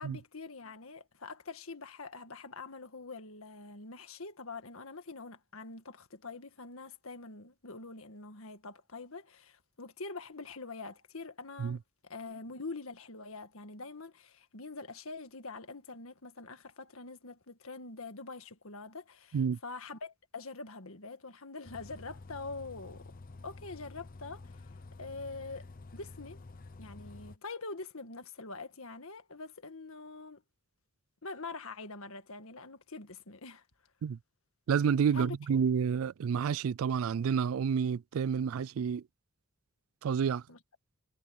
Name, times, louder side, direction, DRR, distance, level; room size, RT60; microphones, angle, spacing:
voice 1, 0.0-23.1 23.4-24.6 25.0-25.7 25.9-26.4 26.8-30.4 31.2-33.6 35.1-35.4 40.5-40.6, left 3 dB, 70° left, 1.8 m, -44 dB
Bus, 21.6-27.4, left 3 dB, 40° left, 0.7 m, -50 dB
voice 2, 34.7-39.0 40.0-40.4, right 7 dB, 70° right, 0.3 m, -29 dB
head